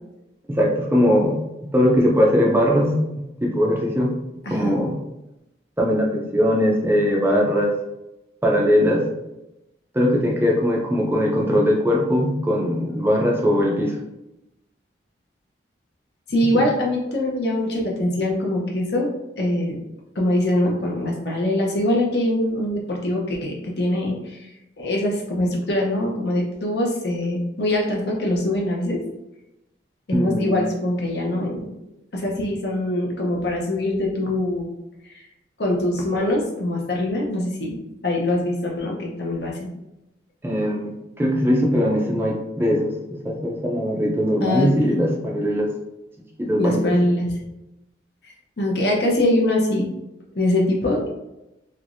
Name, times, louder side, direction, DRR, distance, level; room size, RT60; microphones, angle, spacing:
voice 1, 0.5-1.4 1.7-3.0 3.4-4.1 4.5-5.0 5.8-7.7 8.4-9.0 9.9-14.0 16.5-16.7 30.1-30.7 40.4-42.9 43.2-45.7 46.4-46.9, equal, 10° right, -2 dB, 0.4 m, -20 dB
voice 2, 16.3-19.1 19.4-19.8 20.1-24.5 24.8-29.0 30.1-31.6 32.1-34.7 35.1-35.2 35.6-37.8 38.0-39.7 44.4-44.7 46.6-47.3 48.2-49.9 50.3-51.1, left 1 dB, 60° left, -1 dB, 0.8 m, -23 dB
3.3 x 3.0 x 2.5 m, 0.92 s
head